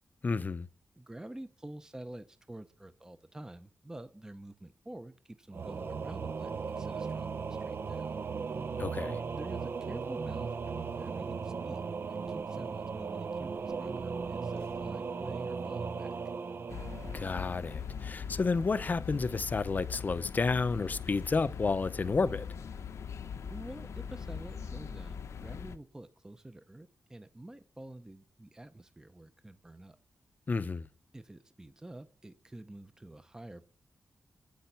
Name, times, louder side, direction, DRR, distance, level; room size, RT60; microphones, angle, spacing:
voice 1, 0.2-0.7 8.8-9.2 17.1-22.5 30.5-30.9, left 4 dB, 35° left, 0.6 m, -31 dB
voice 2, 1.0-8.2 9.3-16.2 23.5-30.0 31.1-33.7, right 1 dB, 15° right, 0.7 m, -48 dB
Singing / Musical instrument, 5.5-18.1, right 5 dB, 50° right, 0.5 m, -37 dB
sound 1, 12.2-15.5, right 4 dB, 70° right, 3.0 m, -59 dB
sound 2, 16.7-25.8, left 7 dB, 85° left, 0.8 m, -41 dB
10.5 x 8.7 x 6.9 m
wide cardioid pair, 140°, 5 cm